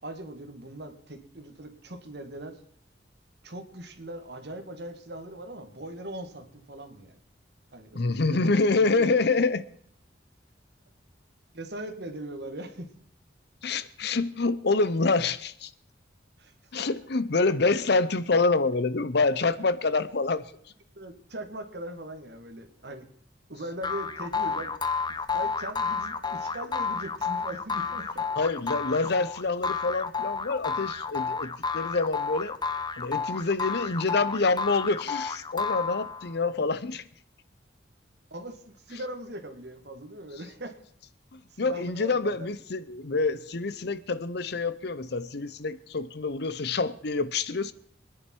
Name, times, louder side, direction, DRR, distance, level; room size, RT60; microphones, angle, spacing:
voice 1, 0.0-2.6 3.4-7.2 7.7-9.1 11.5-12.9 16.4-16.8 20.9-23.1 23.5-24.7 25.1-28.3 38.3-40.8 41.5-42.5, right 1 dB, 60° right, 2.0 m, -40 dB
voice 2, 7.9-9.6 13.6-15.7 16.7-20.4 28.4-32.5 33.0-37.0 41.3-47.7, left 3 dB, 60° left, 0.8 m, -26 dB
sound 1, 23.8-36.4, left 5 dB, 25° left, 0.7 m, -31 dB
25.5 x 10.0 x 4.6 m
head